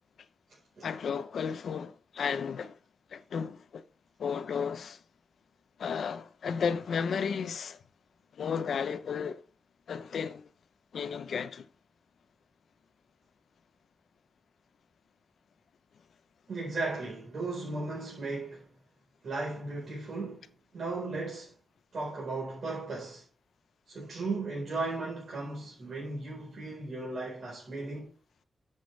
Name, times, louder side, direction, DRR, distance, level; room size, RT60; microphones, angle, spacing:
voice 1, 0.8-2.8 3.1-3.8 4.2-5.0 5.8-7.8 8.3-9.4 9.9-10.5 10.9-11.7, left 6 dB, 80° left, 0.8 m, -33 dB
voice 2, 16.5-18.7 19.2-21.5 21.9-23.3 23.9-28.1, right 3 dB, 55° right, 4.5 m, -36 dB
13.0 x 7.6 x 3.4 m
wide cardioid pair, 170°, 0 cm